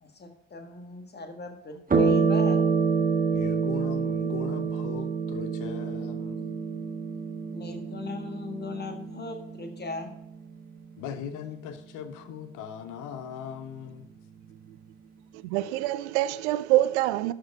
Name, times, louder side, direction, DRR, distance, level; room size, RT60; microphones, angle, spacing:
voice 1, 0.0-2.7 7.5-10.1, left 3 dB, 25° left, 1.7 m, -38 dB
sound 1, 1.9-10.8, right 5 dB, 25° right, 1.4 m, -27 dB
voice 2, 3.3-6.5 11.0-14.1, left 7 dB, 55° left, 1.1 m, -39 dB
voice 3, 15.4-17.3, right 15 dB, 65° right, 0.6 m, -25 dB
12.0 x 4.9 x 4.7 m
figure-of-eight pair, 50°, 37 cm